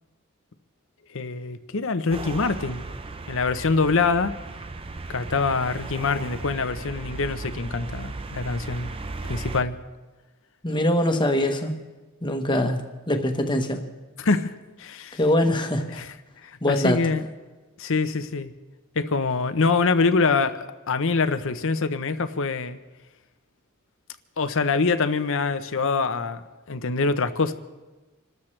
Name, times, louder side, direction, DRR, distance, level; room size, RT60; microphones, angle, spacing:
voice 1, 1.1-2.8 3.3-4.4 5.1-8.9 9.3-9.8 14.2-14.5 14.8-15.2 15.9-16.1 16.4-17.2 17.8-18.5 19.0-22.8 24.4-26.4 26.7-27.5, left 4 dB, 60° left, 0.8 m, -24 dB
sound 1, 2.1-9.6, right 3 dB, 25° right, 0.5 m, -36 dB
voice 2, 10.6-11.8 12.2-13.9 15.2-16.0 16.6-17.0, left 1 dB, 20° left, 1.2 m, -23 dB
27.5 x 13.5 x 3.3 m
head